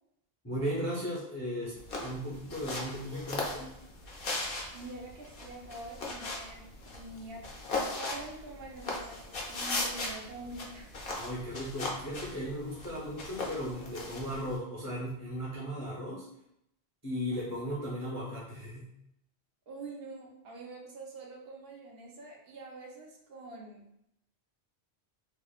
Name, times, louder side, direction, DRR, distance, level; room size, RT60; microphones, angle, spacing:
voice 1, 0.4-3.7 11.1-16.2 17.0-18.9, equal, 25° left, -5 dB, 0.4 m, -36 dB
sound 1, 1.8-14.6, left 2 dB, 65° left, 0.7 m, -38 dB
voice 2, 4.7-7.5 7.7-10.9 17.3-17.8 19.7-23.9, right 2 dB, 70° right, -1 dB, 0.7 m, -46 dB
2.9 x 2.0 x 2.3 m, 0.78 s
omnidirectional pair, 1.1 m